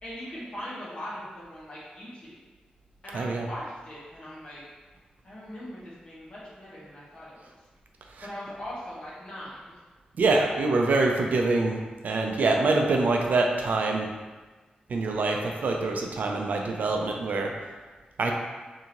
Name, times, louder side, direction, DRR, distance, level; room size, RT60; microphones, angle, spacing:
voice 1, 0.0-2.4 3.0-4.6 5.2-7.5 8.2-9.7, equal, 40° left, -8 dB, 1.2 m, -40 dB
voice 2, 3.1-3.5 8.1-8.3 10.2-14.1 14.9-17.5 18.2-18.3, right 3 dB, 70° right, 1 dB, 0.4 m, -25 dB
3.6 x 2.7 x 2.9 m, 1.3 s
wide cardioid pair, 150°, 3 cm